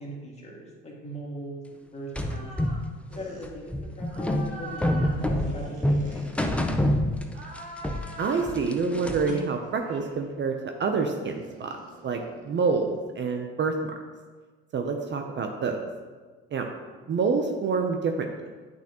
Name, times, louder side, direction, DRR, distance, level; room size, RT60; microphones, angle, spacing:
voice 1, 0.0-2.4 3.1-6.3 17.0-17.1, right 1 dB, 20° left, -3 dB, 2.0 m, -40 dB
sound 1, 2.2-7.6 7.8-9.4, left 1 dB, 5° left, 0.6 m, -27 dB
sound 2, 2.2-2.8 3.1-3.5 4.1-6.8 7.3-8.6 9.1-10.2 11.3-13.1, equal, 55° right, 1.7 m, -43 dB
voice 2, 8.2-11.8 12.0-13.9 14.7-15.8 16.5-16.7 17.1-18.3, right 4 dB, 40° right, 4 dB, 0.7 m, -27 dB
8.6 x 5.7 x 2.9 m, 1.4 s
supercardioid pair, 85°, 29 cm